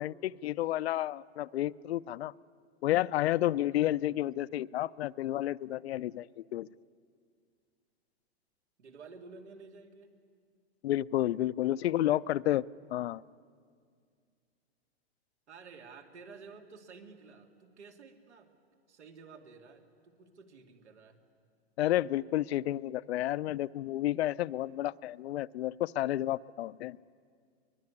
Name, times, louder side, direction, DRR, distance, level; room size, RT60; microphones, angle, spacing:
voice 1, 0.0-2.3 2.8-6.7 10.8-12.6 12.9-13.2 21.8-27.0, left 14 dB, 70° left, 18 dB, 0.6 m, -31 dB
voice 2, 3.7-4.2 8.8-10.1 11.8-12.4 15.5-18.5 18.9-21.2, right 4 dB, 90° right, 5 dB, 2.8 m, -52 dB
23.0 x 21.0 x 9.8 m, 2.1 s
hypercardioid pair, 150°, 33 cm